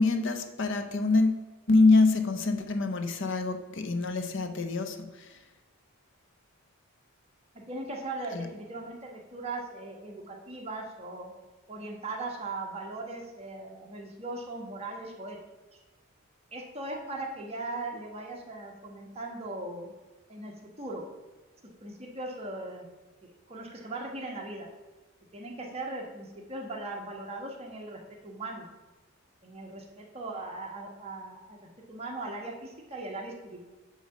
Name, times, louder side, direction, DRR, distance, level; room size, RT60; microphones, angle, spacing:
voice 1, 0.0-5.4 8.3-8.5, left 3 dB, 60° left, 8 dB, 0.7 m, -25 dB
voice 2, 7.7-11.3 11.7-15.4 16.5-19.9 20.3-21.0 21.8-22.9 23.2-24.7 25.3-28.7 29.4-31.6 31.9-33.6, right 2 dB, 30° right, 0 dB, 1.2 m, -39 dB
8.1 x 3.9 x 6.6 m, 1.2 s
head